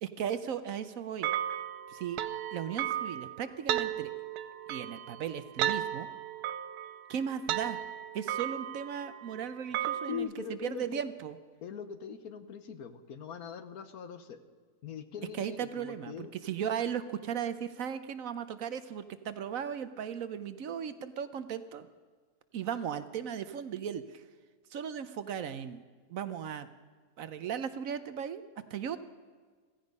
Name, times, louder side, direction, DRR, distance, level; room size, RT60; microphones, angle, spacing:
voice 1, 0.0-1.3 1.9-2.2 2.5-4.1 4.7-6.1 7.1-7.8 8.1-11.4 15.4-21.9 22.5-24.2 24.7-25.8 26.1-26.7 27.2-28.4 28.7-29.0, right 8 dB, 65° right, 12 dB, 1.1 m, -36 dB
sound 1, 1.2-10.2, right 11 dB, 80° right, 1.2 m, -35 dB
voice 2, 10.1-11.0 11.6-14.4 14.8-16.3, left 7 dB, 70° left, 10 dB, 1.4 m, -41 dB
16.0 x 15.5 x 5.3 m, 1.5 s
omnidirectional pair, 1.7 m